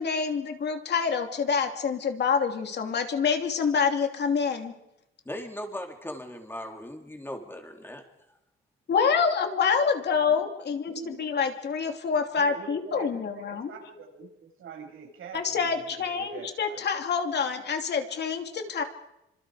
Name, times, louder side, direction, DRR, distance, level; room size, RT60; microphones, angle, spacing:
voice 1, 0.0-4.7 8.9-13.7 15.3-18.8, left 6 dB, 55° left, 5 dB, 3.0 m, -27 dB
voice 2, 5.2-8.0, left 1 dB, 10° left, 3 dB, 3.5 m, -38 dB
voice 3, 10.9-11.4 12.4-16.8, right 5 dB, 75° right, 2 dB, 6.9 m, -44 dB
28.0 x 25.5 x 5.1 m, 0.87 s
cardioid pair, 145°, 21 cm